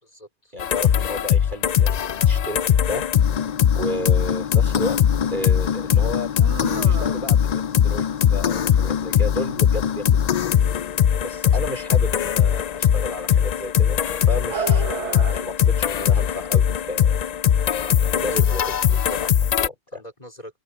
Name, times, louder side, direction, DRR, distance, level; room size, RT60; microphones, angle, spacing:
voice 1, 0.0-0.5 17.8-18.6 19.9-20.6, equal, 30° left, 4.2 m, -42 dB
voice 2, 0.5-3.1 3.8-5.0 5.3-6.3 6.8-10.6 11.2-14.0 14.3-17.2 18.1-20.0, left 1 dB, 40° right, 2.8 m, -32 dB
sound 1, 0.6-19.7, left 9 dB, 90° left, 0.3 m, -20 dB
sound 2, 5.8-15.3, right 7 dB, 65° right, 1.3 m, -36 dB
open air
omnidirectional pair, 1.3 m